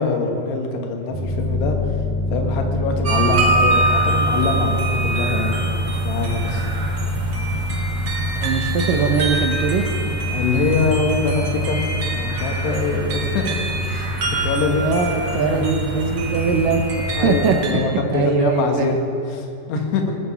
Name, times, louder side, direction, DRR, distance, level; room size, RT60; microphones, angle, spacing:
voice 1, 0.0-1.8 2.3-6.7 10.3-11.9 12.1-14.8 15.3-15.8 16.3-16.5 17.1-19.1 19.3-20.2, left 4 dB, 85° left, 3 dB, 3.5 m, -24 dB
sound 1, 1.1-17.5, equal, 65° left, 5.3 m, -26 dB
sound 2, 3.0-17.7, right 2 dB, 55° right, 1.5 m, -25 dB
voice 2, 8.4-9.8 14.8-16.8 17.2-17.6 17.8-18.9, right 6 dB, 75° right, 5 dB, 2.1 m, -21 dB
18.0 x 7.1 x 6.9 m, 2.7 s
omnidirectional pair, 4.7 m